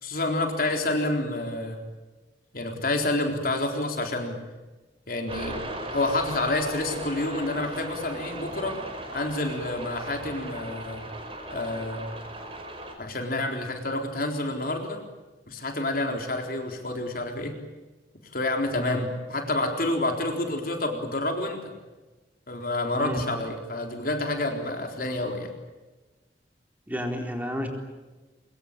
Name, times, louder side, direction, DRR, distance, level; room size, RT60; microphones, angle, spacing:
voice 1, 0.0-1.8 2.5-4.4 5.1-5.6 5.9-8.8 9.1-11.1 11.5-12.1 13.0-15.0 15.5-17.6 18.3-21.7 22.5-25.5, left 2 dB, 50° left, 3 dB, 4.0 m, -28 dB
sound 1, 5.3-12.9, right 1 dB, 30° right, 5.5 m, -37 dB
voice 2, 26.9-27.7, equal, 10° right, 2 dB, 4.0 m, -31 dB
24.5 x 23.0 x 8.9 m, 1.2 s
head